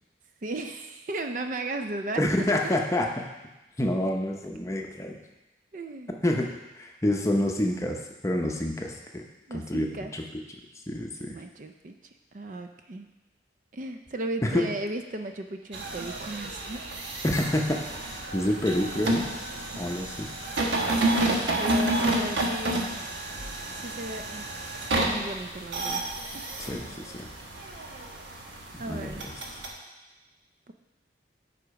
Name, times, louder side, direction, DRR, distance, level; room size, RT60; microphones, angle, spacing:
voice 1, 0.4-3.0 5.7-6.2 9.5-10.1 11.3-11.9 12.3-13.1 13.7-16.8 20.9-22.9 23.7-24.5 25.0-26.0 26.3-26.4 26.7-27.0 28.8-29.2 30.7-30.8, right 2 dB, 45° right, 6 dB, 0.4 m, -36 dB
voice 2, 2.2-3.2 3.8-5.2 6.2-9.2 9.5-10.2 10.9-11.4 14.4-14.7 17.2-19.3 19.8-20.3 26.6-27.3 28.7-29.3, left 1 dB, 15° left, 1 dB, 0.6 m, -28 dB
sound 1, 15.7-29.7, right 1 dB, 85° right, 1.2 m, -30 dB
8.2 x 5.0 x 4.7 m, 1.1 s
head